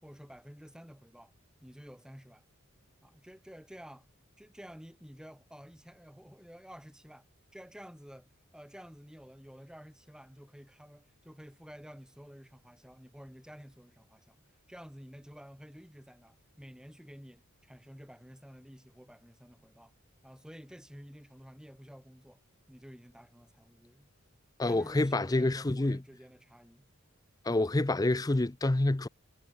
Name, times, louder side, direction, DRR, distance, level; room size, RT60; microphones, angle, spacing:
voice 1, 0.0-1.3 1.6-2.4 3.0-4.1 4.4-7.3 7.5-14.4 14.7-19.9 20.2-22.4 22.7-24.1 24.6-26.9, equal, 5° right, 2.2 m, -51 dB
voice 2, 24.6-26.0 27.4-29.1, left 2 dB, 15° left, 0.5 m, -27 dB
head